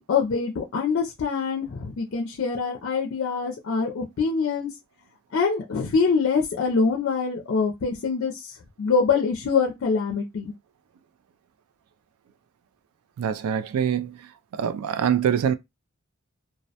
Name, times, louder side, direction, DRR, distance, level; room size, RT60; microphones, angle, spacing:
voice 1, 0.0-4.7 5.3-10.5, left 5 dB, 60° left, 0.4 m, -24 dB
voice 2, 13.2-14.2 14.5-15.5, right 8 dB, 85° right, 0.3 m, -24 dB
2.2 x 2.1 x 2.7 m
head